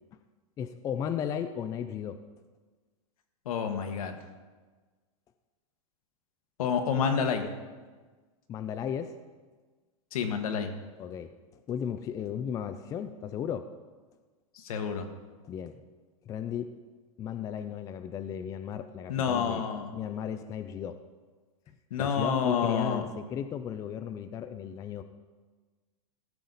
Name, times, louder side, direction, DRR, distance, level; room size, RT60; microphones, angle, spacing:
voice 1, 0.6-2.2 8.5-9.1 11.0-11.3 11.7-13.7 15.4-15.8 16.3-16.7 17.2-19.7 19.9-21.0 22.0-25.0, left 8 dB, 20° left, 9 dB, 0.4 m, -35 dB
voice 2, 3.4-4.2 6.6-7.5 10.1-10.7 14.5-15.1 19.1-19.9 21.9-23.0, left 6 dB, 75° left, 5 dB, 1.5 m, -29 dB
15.5 x 6.9 x 4.0 m, 1.4 s
supercardioid pair, 140°, 18 cm